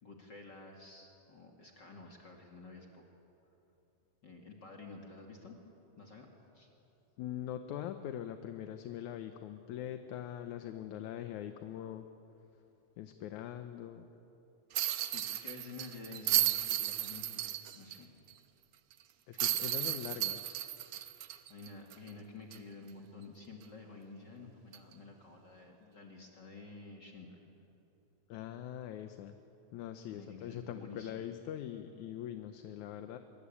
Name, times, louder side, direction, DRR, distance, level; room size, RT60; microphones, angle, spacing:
voice 1, 0.0-3.0 4.2-5.5 6.0-6.3 6.5-6.7 15.0-18.1 21.5-27.4 30.1-31.2, left 3 dB, 40° left, 1 dB, 2.4 m, -51 dB
voice 2, 7.2-12.1 13.0-14.1 19.3-20.7 28.3-29.4 29.7-33.2, left 10 dB, 75° left, 8 dB, 2.2 m, -42 dB
sound 1, 14.7-18.0 18.3-18.4 19.4-22.1 22.5-22.6 24.7-24.9, right 13 dB, 70° right, 1.8 m, -34 dB
25.5 x 23.0 x 8.5 m, 2.9 s
omnidirectional pair, 3.6 m